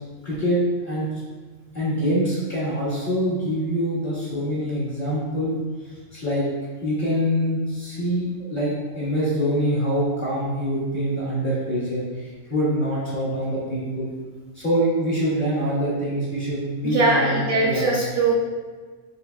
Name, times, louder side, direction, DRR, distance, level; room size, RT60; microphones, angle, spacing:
voice 1, 0.2-1.1 1.7-5.5 6.1-6.4 6.8-14.1 14.5-17.9, equal, 35° left, -12 dB, 1.7 m, -25 dB
voice 2, 16.8-18.3, right 3 dB, 70° right, -3 dB, 1.0 m, -21 dB
5.4 x 4.3 x 2.3 m, 1.4 s
omnidirectional pair, 1.4 m